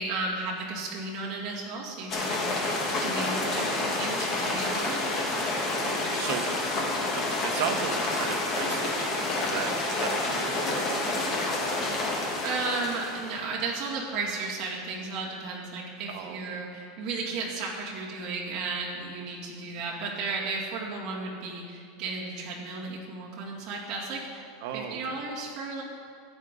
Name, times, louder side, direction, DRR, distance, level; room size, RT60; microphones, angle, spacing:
voice 1, 0.0-2.5 3.0-5.0 12.4-24.4 24.7-25.8, right 3 dB, 35° right, -6 dB, 2.3 m, -34 dB
sound 1, 2.1-13.4, left 2 dB, 25° left, 1.3 m, -29 dB
voice 2, 5.7-6.5 7.1-11.7 16.1-16.6 19.7-19.8 24.6-25.2, right 7 dB, 55° right, 5 dB, 1.0 m, -36 dB
14.0 x 9.0 x 3.8 m, 2.3 s
supercardioid pair, 175°, 0 cm